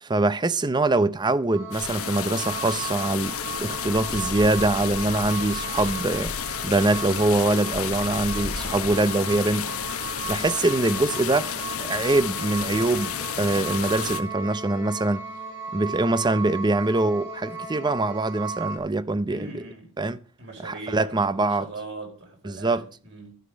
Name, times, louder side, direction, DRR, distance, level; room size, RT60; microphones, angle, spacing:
voice 1, 0.0-9.7 10.3-11.5 11.8-15.2 15.7-19.6 20.0-20.2 20.6-21.7 22.4-22.9, right 2 dB, 20° right, 0.5 m, -24 dB
sound 1, 1.5-18.8, right 4 dB, 80° right, 4.7 m, -36 dB
sound 2, 1.7-14.2, left 7 dB, 75° left, 1.1 m, -31 dB
voice 2, 19.3-19.9 20.4-23.3, right 3 dB, 55° right, 4.4 m, -40 dB
12.0 x 11.5 x 5.2 m
head